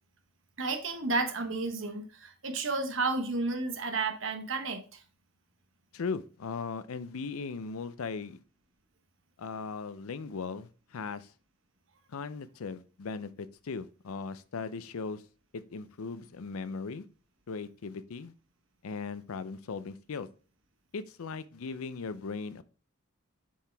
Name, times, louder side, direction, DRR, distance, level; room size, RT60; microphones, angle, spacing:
voice 1, 0.6-5.0, right 3 dB, 65° right, 1.1 m, -32 dB
voice 2, 5.9-8.4 9.4-11.3 12.1-15.2 15.5-17.0 17.5-18.3 18.8-20.3 20.9-22.6, left 4 dB, 85° left, 0.5 m, -38 dB
7.1 x 4.7 x 3.4 m
head